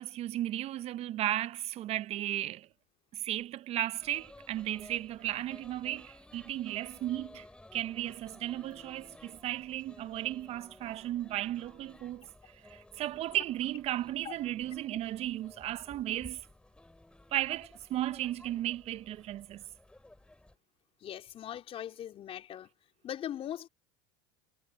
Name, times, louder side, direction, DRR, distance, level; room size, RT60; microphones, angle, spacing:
voice 1, 0.0-2.7 3.1-7.4 7.7-12.3 12.6-16.4 17.3-19.6, right 13 dB, 45° right, 0.8 m, -35 dB
sound 1, 4.0-20.6, left 1 dB, 5° left, 2.8 m, -56 dB
voice 2, 21.0-22.7 23.0-23.7, left 10 dB, 40° left, 3.8 m, -40 dB
hypercardioid pair, 95°, 15 cm